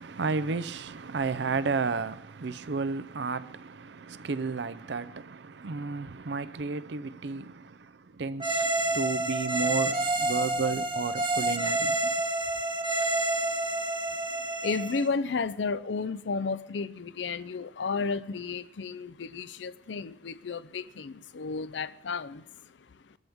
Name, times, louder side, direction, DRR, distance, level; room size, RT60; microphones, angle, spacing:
voice 1, 0.0-12.2, right 4 dB, 70° right, 0.6 m, -32 dB
sound 1, 8.4-15.1, right 2 dB, 25° right, 1.3 m, -28 dB
voice 2, 13.1-23.2, left 4 dB, 80° left, 0.6 m, -33 dB
23.5 x 13.5 x 3.6 m
head